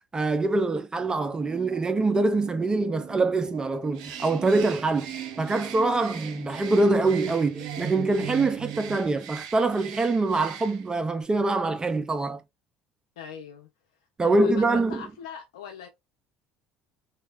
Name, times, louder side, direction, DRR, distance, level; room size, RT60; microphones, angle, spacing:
voice 1, 0.1-5.1 5.4-12.4 14.2-15.0, right 3 dB, 25° right, 0.4 m, -24 dB
sound 1, 1.0-9.0, right 10 dB, 65° right, 1.0 m, -40 dB
Bird, 3.9-11.0, right 8 dB, 80° right, 0.6 m, -43 dB
voice 2, 13.2-13.7 14.2-15.9, left 7 dB, 85° left, 0.5 m, -40 dB
3.1 x 2.2 x 3.3 m
hypercardioid pair, 70°, 3 cm